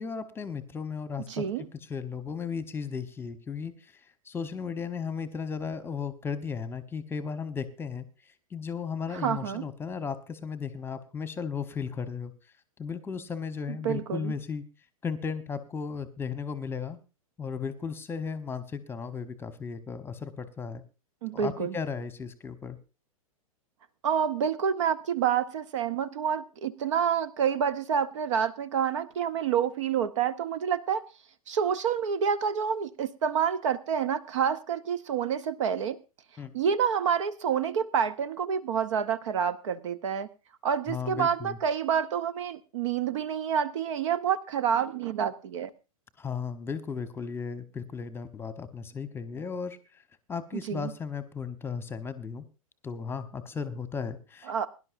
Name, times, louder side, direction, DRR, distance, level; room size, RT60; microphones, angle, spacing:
voice 1, 0.0-1.4 1.7-4.0 4.2-12.3 12.8-14.6 15.0-17.0 17.4-20.8 21.3-22.8 36.4-36.5 40.9-41.6 46.2-50.0 50.3-52.4 52.8-54.7, left 6 dB, 10° left, 12 dB, 1.1 m, -35 dB
voice 2, 1.3-1.7 9.2-9.7 13.8-14.3 21.2-21.8 24.0-31.0 31.5-36.0 36.5-40.3 40.6-45.7 50.7-50.9 54.5-54.7, right 7 dB, 55° right, 16 dB, 0.8 m, -28 dB
22.5 x 11.0 x 2.6 m, 0.30 s
figure-of-eight pair, 100°, 19 cm